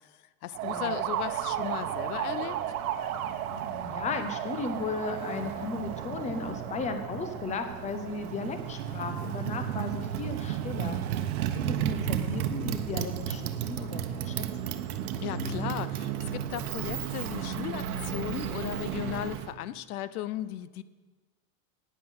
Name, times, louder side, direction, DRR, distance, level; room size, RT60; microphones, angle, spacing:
voice 1, 0.4-2.6 15.2-20.8, left 13 dB, 90° left, 16 dB, 0.7 m, -36 dB
Motorcycle, 0.5-19.5, right 9 dB, 85° right, 1.0 m, -33 dB
voice 2, 3.5-11.0 11.5-14.7, left 4 dB, 15° left, 8 dB, 0.8 m, -36 dB
9.4 x 9.4 x 6.3 m, 1.3 s
supercardioid pair, 145°, 43 cm